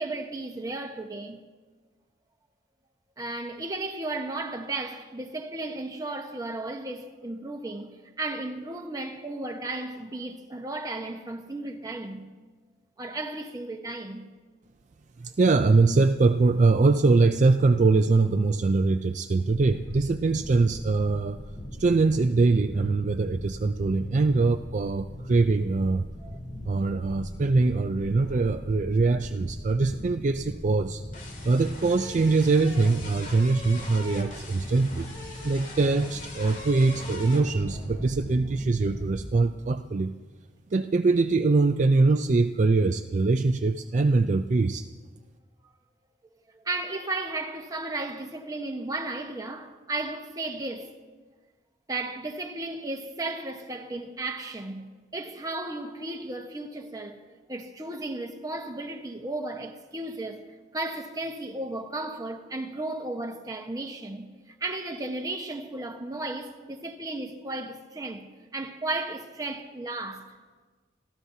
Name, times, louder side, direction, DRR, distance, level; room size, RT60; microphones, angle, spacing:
voice 1, 0.0-1.4 3.2-12.2 13.0-14.2 26.2-26.4 46.5-50.9 51.9-54.9 55.1-57.2 57.5-60.4 60.7-68.3 68.5-70.4, right 2 dB, 20° right, 1.1 m, -34 dB
voice 2, 15.2-21.4 21.8-26.0 26.7-31.0 31.4-35.1 35.4-40.1 40.7-44.9, right 3 dB, 45° right, 0.4 m, -23 dB
sound 1, 19.5-39.3, left 1 dB, 50° left, 2.6 m, -40 dB
29.0 x 14.5 x 2.8 m
head